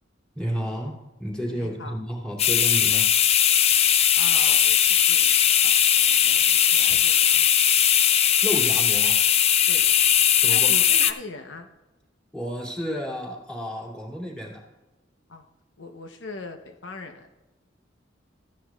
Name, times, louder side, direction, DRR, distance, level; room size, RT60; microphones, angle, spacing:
voice 1, 0.3-3.1 8.4-9.2 10.4-10.7 12.3-14.6, equal, 5° left, -3 dB, 2.6 m, -31 dB
voice 2, 1.5-2.0 4.2-5.4 5.6-7.5 9.7-9.9 10.5-11.7 15.3-15.4 15.8-17.3, left 3 dB, 80° left, 5 dB, 0.9 m, -40 dB
sound 1, 2.4-11.1, left 9 dB, 35° left, 0.4 m, -19 dB
15.0 x 10.0 x 2.4 m, 1.0 s
head